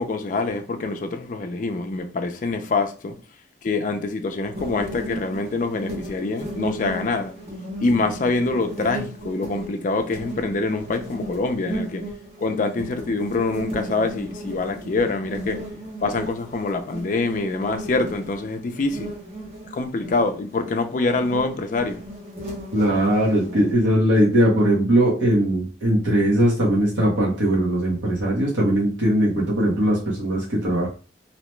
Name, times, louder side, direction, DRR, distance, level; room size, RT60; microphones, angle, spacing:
voice 1, 0.0-3.1 3.6-7.3 7.8-12.0 12.4-15.6 16.0-19.1 19.7-22.0, left 3 dB, 40° left, 0.4 m, -25 dB
sound 1, 4.5-23.7, right 1 dB, 30° right, 0.8 m, -36 dB
voice 2, 22.7-30.9, right 1 dB, 70° right, 1.0 m, -20 dB
2.8 x 2.1 x 3.0 m
head